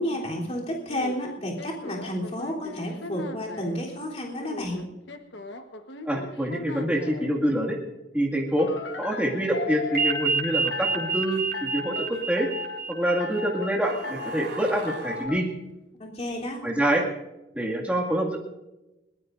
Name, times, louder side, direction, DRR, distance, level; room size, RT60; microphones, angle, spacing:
voice 1, 0.0-4.8 16.0-16.6, equal, 35° left, -3 dB, 3.4 m, -31 dB
sound 1, 0.9-3.8 4.4-7.3 8.6-10.2 10.7-11.2 11.5-12.1 12.4-12.8 13.2-13.7 14.0-14.5 14.9-15.4, left 3 dB, 75° left, 1.3 m, -37 dB
voice 2, 6.1-7.8 8.1-8.7 9.0-12.5 12.9-15.5 16.6-17.1 17.5-18.4, equal, 5° right, -2 dB, 2.1 m, -26 dB
sound 2, 9.9-14.1, right 4 dB, 55° right, 4.7 m, -29 dB
sound 3, 10.3-10.4 11.3-11.6 12.1-12.2 13.3-13.4 13.8-15.3, right 2 dB, 75° right, 3.8 m, -39 dB
22.0 x 19.5 x 2.6 m, 0.97 s
head